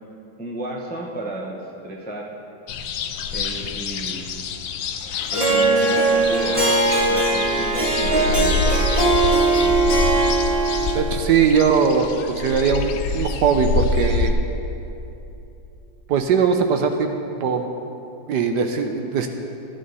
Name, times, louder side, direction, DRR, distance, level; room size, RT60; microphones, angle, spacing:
voice 1, 0.4-2.3 3.3-4.3 5.0-6.6 7.1-9.9, right 1 dB, 10° left, -2 dB, 0.5 m, -33 dB
sound 1, 2.7-14.3, left 4 dB, 70° left, 1.0 m, -26 dB
Harp, 5.3-11.1, right 3 dB, 20° right, 1.2 m, -19 dB
voice 2, 10.9-14.4 16.1-17.7 18.3-19.3, right 6 dB, 70° right, 5 dB, 1.1 m, -20 dB
14.5 x 10.0 x 4.1 m, 2.9 s
omnidirectional pair, 2.1 m